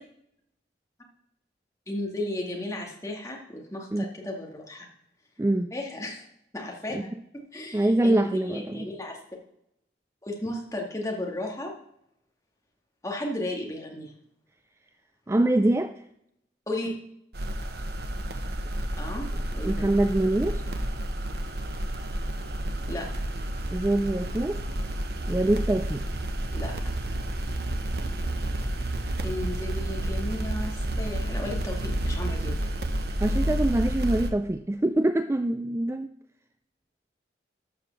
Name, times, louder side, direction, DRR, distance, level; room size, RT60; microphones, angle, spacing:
voice 1, 1.9-4.9 5.7-6.2 6.5-7.1 7.3-9.2 10.2-11.7 13.0-14.1 16.7-16.9 19.0-19.3 19.5-19.9 22.9-23.1 26.5-26.7 29.2-32.5, left 1 dB, 20° left, -1 dB, 2.1 m, -34 dB
voice 2, 5.4-5.7 6.9-7.0 7.7-8.9 15.3-15.9 19.6-20.6 23.7-24.6 25.3-26.0 33.2-36.1, right 1 dB, 15° right, 9 dB, 0.3 m, -24 dB
sound 1, 17.3-34.3, right 1 dB, 60° right, 1.0 m, -30 dB
13.0 x 5.0 x 7.1 m, 0.78 s
head